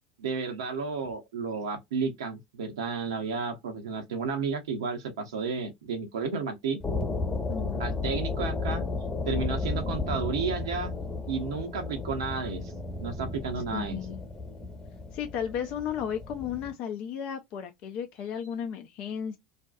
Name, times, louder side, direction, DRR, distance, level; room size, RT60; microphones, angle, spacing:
voice 1, 0.2-6.8 7.8-8.8 9.3-10.9 11.3-12.7 13.0-14.0, right 5 dB, 65° right, 0.6 m, -32 dB
sound 1, 6.8-16.7, left 3 dB, 20° left, 1.0 m, -33 dB
voice 2, 7.5-7.9 13.7-14.2 15.1-19.4, left 8 dB, 45° left, 0.4 m, -34 dB
2.5 x 2.2 x 2.3 m
figure-of-eight pair, 75°, 3 cm